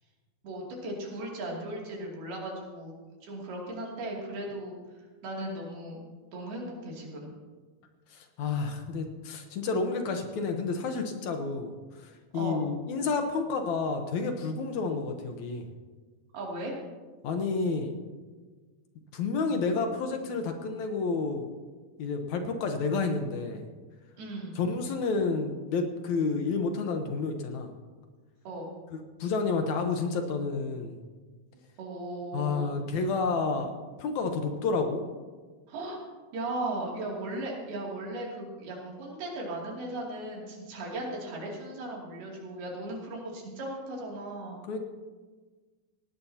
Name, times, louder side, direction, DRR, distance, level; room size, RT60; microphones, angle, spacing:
voice 1, 0.4-2.9 3.2-4.8 5.2-7.4 12.3-12.7 16.3-16.7 24.2-24.6 28.4-28.7 31.8-32.7 35.7-36.0 36.3-44.6, right 1 dB, 90° right, -3 dB, 4.8 m, -37 dB
voice 2, 8.1-11.7 12.3-15.7 17.2-18.0 19.1-21.5 22.0-23.7 24.6-27.7 28.9-31.0 32.3-33.7 34.0-35.0 44.7-44.8, left 4 dB, 65° left, 5 dB, 2.1 m, -30 dB
19.0 x 17.0 x 2.9 m, 1.4 s
omnidirectional pair, 4.3 m